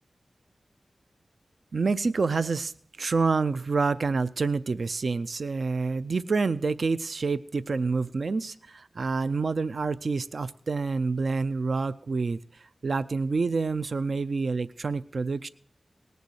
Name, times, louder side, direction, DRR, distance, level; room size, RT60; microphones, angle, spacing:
voice 1, 1.7-2.7 3.0-15.5, right 4 dB, 60° right, 13 dB, 0.4 m, -28 dB
19.0 x 6.9 x 6.3 m, 0.63 s
wide cardioid pair, 85°, 0 cm